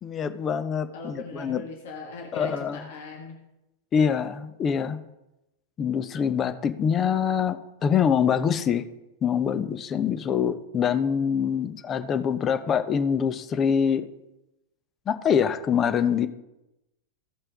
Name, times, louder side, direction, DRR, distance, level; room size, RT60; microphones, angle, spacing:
voice 1, 0.0-1.6 2.3-2.8 3.9-5.0 5.8-8.8 9.2-14.1 15.1-16.3, left 7 dB, 25° left, 10 dB, 0.8 m, -25 dB
voice 2, 0.9-3.4, left 3 dB, 55° left, 0 dB, 1.6 m, -38 dB
16.0 x 5.6 x 3.6 m, 0.94 s
figure-of-eight pair, 90°, 0 cm